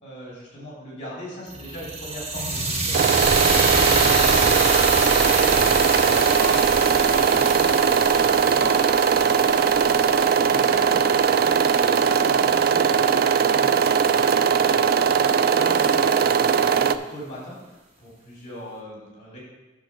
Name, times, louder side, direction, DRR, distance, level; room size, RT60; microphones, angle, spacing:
voice 1, 0.0-4.0 10.5-19.4, equal, 35° left, -5 dB, 3.5 m, -39 dB
sound 1, 1.5-11.7, right 2 dB, 35° right, 1.1 m, -26 dB
sound 2, 2.9-17.0, right 6 dB, 50° right, 0.3 m, -19 dB
voice 2, 3.5-10.1, equal, 15° left, -8 dB, 2.3 m, -39 dB
8.1 x 7.0 x 4.5 m, 1.1 s
head